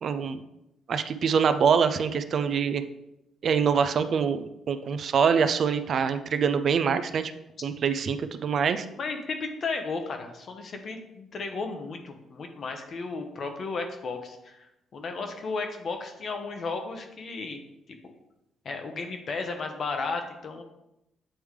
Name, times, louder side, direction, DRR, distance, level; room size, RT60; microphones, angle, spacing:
voice 1, 0.0-0.4 0.9-2.8 3.4-7.3 7.6-8.9, right 6 dB, 55° right, 10 dB, 0.4 m, -24 dB
voice 2, 9.0-17.6 17.9-18.0 18.6-20.6, left 4 dB, 50° left, 5 dB, 0.9 m, -34 dB
8.5 x 3.4 x 3.2 m, 0.86 s
cardioid pair, 90°, 0 cm